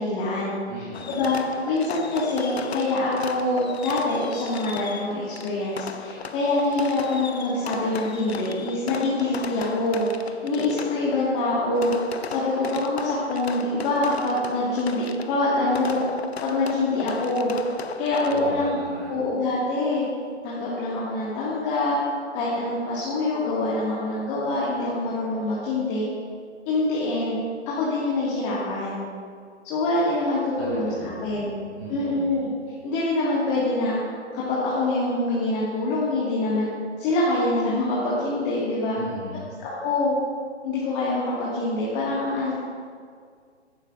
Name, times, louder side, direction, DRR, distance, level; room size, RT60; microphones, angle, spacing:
voice 1, 0.0-0.6 1.1-1.4 1.7-11.9 12.3-16.0 16.4-17.5 18.0-20.0 20.4-22.0 22.3-26.1 26.7-27.4 27.7-29.1 29.6-31.6 31.9-32.5 32.8-34.0 34.3-36.7 37.0-39.0 39.6-40.1 40.6-42.6, left 2 dB, 20° left, -7 dB, 1.6 m, -25 dB
voice 2, 0.7-1.2 18.3-19.3 30.6-31.5 31.7-32.4 38.9-39.6, equal, 65° right, -4 dB, 2.4 m, -38 dB
Fireworks, 0.9-18.7, left 5 dB, 60° left, 0.8 m, -37 dB
15.0 x 11.5 x 2.4 m, 2.1 s
figure-of-eight pair, 130°, 36 cm